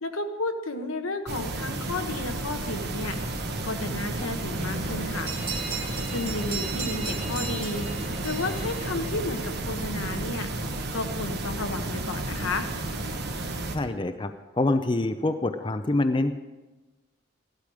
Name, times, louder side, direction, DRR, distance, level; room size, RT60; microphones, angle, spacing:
voice 1, 0.0-3.2 3.6-5.3 6.1-7.9 8.2-10.5 10.9-12.7, left 2 dB, 85° left, 6 dB, 1.2 m, -32 dB
sound 1, 1.3-13.8, right 2 dB, 55° right, 1.3 m, -32 dB
sound 2, 4.5-8.9, right 1 dB, 30° right, 1.0 m, -40 dB
sound 3, 5.3-9.5, right 4 dB, 15° right, 1.7 m, -37 dB
voice 2, 13.7-16.3, left 2 dB, 25° left, 8 dB, 0.5 m, -26 dB
15.0 x 12.0 x 4.9 m, 1.1 s
head